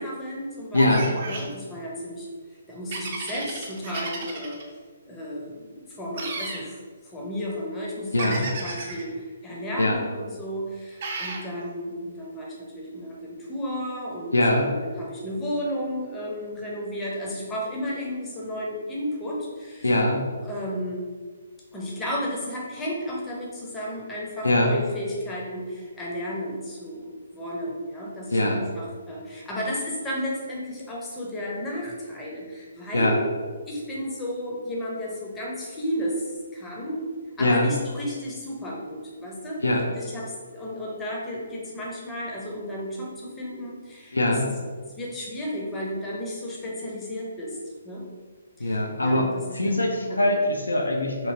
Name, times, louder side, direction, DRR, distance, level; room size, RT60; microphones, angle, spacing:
voice 1, 0.0-2.3 2.7-4.6 5.1-8.3 8.6-19.9 20.4-21.1 21.7-33.2 33.7-37.1 37.4-39.6 40.0-44.4 45.0-47.6 47.8-48.1 48.6-50.4, equal, 10° left, -4 dB, 0.6 m, -33 dB
voice 2, 0.7-1.1 8.1-8.5 9.8-10.0 14.3-14.7 19.8-20.3 24.4-24.7 28.3-28.6 32.9-33.2 37.4-37.7 39.6-39.9 44.1-44.5 48.6-49.3 49.5-51.3, left 1 dB, 75° left, 1 dB, 0.4 m, -22 dB
sound 1, 0.7-1.5 2.9-4.6 6.1-6.6 8.2-9.0 11.0-11.4, right 3 dB, 40° right, 0.5 m, -33 dB
2.9 x 2.7 x 2.7 m, 1.5 s
figure-of-eight pair, 130°, 0 cm